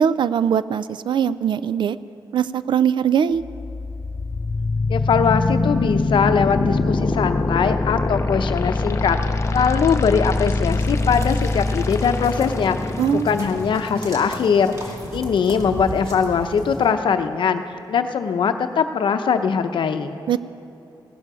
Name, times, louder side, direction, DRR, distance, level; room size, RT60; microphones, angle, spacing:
voice 1, 0.0-2.0 2.3-3.4 13.0-13.3 20.3-20.4, right 8 dB, 70° right, 16 dB, 0.3 m, -20 dB
sound 1, 3.4-15.4, left 3 dB, 35° left, 0.6 m, -24 dB
voice 2, 4.9-9.2 9.5-12.8 13.1-20.2, left 6 dB, 75° left, 8 dB, 0.7 m, -21 dB
sound 2, 10.7-16.9, right 1 dB, 40° right, 2.0 m, -37 dB
16.0 x 12.0 x 4.9 m, 2.9 s
wide cardioid pair, 130°, 8 cm